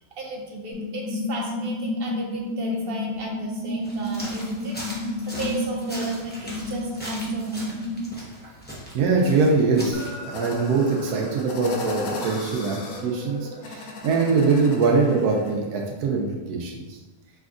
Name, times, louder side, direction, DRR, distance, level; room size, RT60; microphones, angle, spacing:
voice 1, 0.2-4.8 5.3-7.8, right 2 dB, 50° right, -1 dB, 0.8 m, -35 dB
sound 1, 0.7-8.1, left 1 dB, 85° left, 1.8 m, -30 dB
sound 2, 3.8-10.1, equal, 10° left, 0.5 m, -39 dB
voice 2, 8.9-17.0, right 4 dB, 75° right, 0 dB, 1.1 m, -23 dB
sound 3, 9.9-15.5, left 2 dB, 70° left, 1.1 m, -36 dB
5.1 x 3.4 x 2.5 m, 1.2 s
omnidirectional pair, 1.7 m